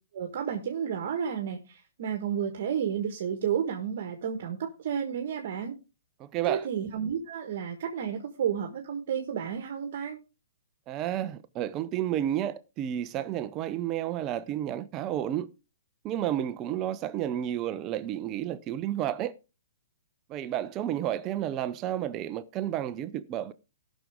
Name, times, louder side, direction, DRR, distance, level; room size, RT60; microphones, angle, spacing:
voice 1, 0.1-5.7 6.5-10.2, right 8 dB, 45° right, 1.4 m, -31 dB
voice 2, 6.2-6.7 10.9-15.5 16.0-19.3 20.3-23.5, right 11 dB, 20° right, 0.5 m, -31 dB
17.5 x 6.1 x 3.6 m
hypercardioid pair, 170°, 0 cm